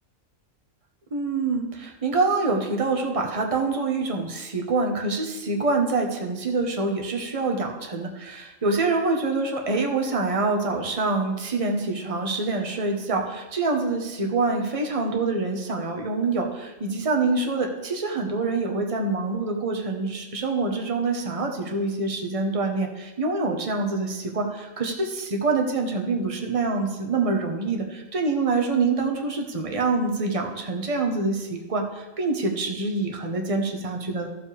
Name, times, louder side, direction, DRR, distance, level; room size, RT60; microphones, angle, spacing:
voice 1, 1.1-34.3, right 3 dB, 25° right, 3 dB, 1.1 m, -26 dB
14.0 x 7.3 x 3.4 m, 1.1 s
omnidirectional pair, 1.4 m